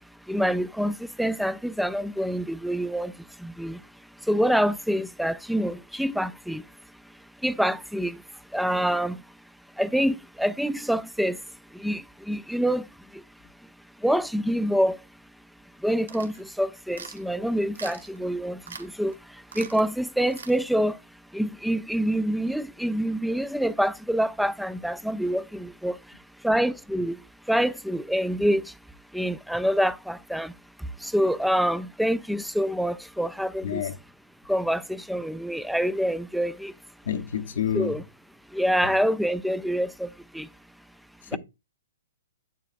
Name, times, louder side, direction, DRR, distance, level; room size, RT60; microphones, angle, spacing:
voice 1, 0.3-3.1 3.4-3.8 4.3-6.6 7.4-8.2 8.5-9.2 9.8-11.4 11.7-12.9 13.1-13.2 14.0-15.0 15.8-19.1 19.5-21.0 21.3-26.0 26.4-27.2 27.5-28.7 29.1-30.5 31.0-33.8 34.5-36.7 37.7-38.0 38.5-40.5 41.3-41.4, equal, ahead, 0.3 m, -26 dB
sound 1, 16.1-16.4 16.9-17.2 17.8-18.2 18.7-18.9 19.1-19.2 19.5-19.9 20.3-20.6, right 5 dB, 90° right, 1.1 m, -41 dB
voice 2, 37.1-37.9, left 9 dB, 75° left, 0.8 m, -28 dB
8.1 x 7.5 x 2.5 m
hypercardioid pair, 145°, 0 cm